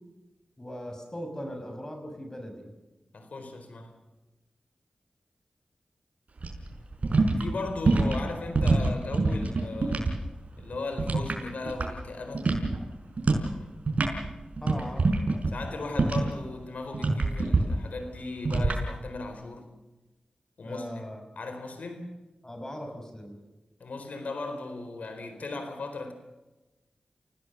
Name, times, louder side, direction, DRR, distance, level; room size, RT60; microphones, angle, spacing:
voice 1, 0.6-2.7 14.6-15.1 20.6-21.2 22.4-23.4, equal, 25° left, 5 dB, 6.3 m, -39 dB
voice 2, 3.1-3.9 7.4-10.1 10.6-12.6 15.5-19.7 20.6-21.0 21.3-22.1 23.8-26.1, left 3 dB, 85° left, 7 dB, 4.3 m, -37 dB
sound 1, 6.4-10.2 10.4-12.1 12.3-12.8 13.2-13.5 13.8-16.4 16.9-17.6 18.5-18.8, right 3 dB, 70° right, 5.4 m, -25 dB
29.5 x 17.0 x 6.9 m, 1.1 s
cardioid pair, 50°, 2 cm